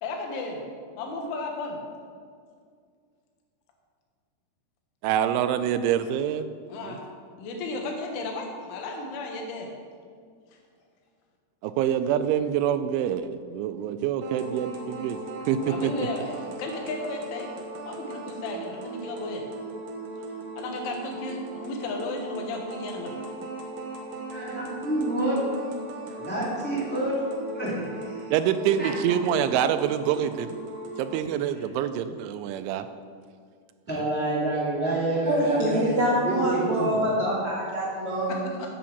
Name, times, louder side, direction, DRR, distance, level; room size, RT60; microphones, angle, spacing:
voice 1, 0.0-0.6 1.0-1.8 6.7-7.0 7.4-9.7 15.6-17.5 17.8-19.4 20.6-23.2 38.3-38.7, left 2 dB, 90° left, 2 dB, 3.8 m, -34 dB
voice 2, 5.0-6.5 6.8-7.0 11.6-15.2 15.5-15.9 28.3-30.6 31.0-32.9 33.9-34.0, right 9 dB, 90° right, 11 dB, 3.0 m, -26 dB
sound 1, 14.2-31.2, right 2 dB, 70° right, 2.1 m, -38 dB
voice 3, 24.3-25.4 26.1-27.1 27.5-28.3 28.8-29.1 31.5-31.6 33.9-36.0 36.2-37.0, right 2 dB, 5° left, -7 dB, 1.3 m, -28 dB
voice 4, 35.3-38.4, equal, 45° right, -7 dB, 1.9 m, -25 dB
8.7 x 7.3 x 7.1 m, 2.1 s
omnidirectional pair, 5.3 m